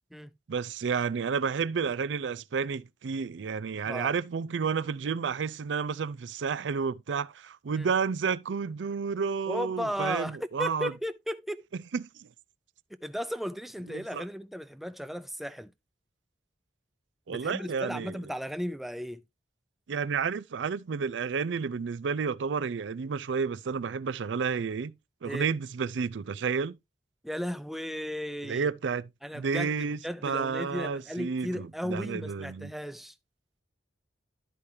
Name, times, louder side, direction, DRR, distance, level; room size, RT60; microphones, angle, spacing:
voice 1, 0.5-10.9 11.9-12.1 13.9-14.2 17.3-18.1 19.9-24.9 25.2-26.8 28.4-29.1 29.3-32.7, right 5 dB, 75° right, 0.4 m, -31 dB
voice 2, 9.5-11.7 13.0-15.7 17.3-19.2 25.2-25.5 27.2-28.7 29.2-33.1, equal, ahead, 0.4 m, -35 dB
12.0 x 4.9 x 2.7 m
head